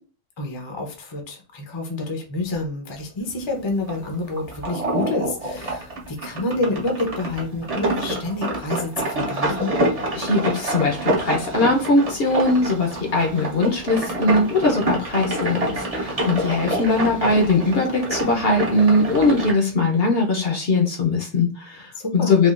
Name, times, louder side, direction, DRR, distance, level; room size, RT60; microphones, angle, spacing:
voice 1, 0.4-9.8 21.9-22.4, left 2 dB, 30° left, 2 dB, 0.5 m, -28 dB
sound 1, 3.2-19.5, right 1 dB, 35° right, 0.6 m, -27 dB
voice 2, 10.2-22.5, left 2 dB, 55° left, 1 dB, 0.8 m, -20 dB
3.5 x 2.4 x 2.4 m, 0.39 s
omnidirectional pair, 1.4 m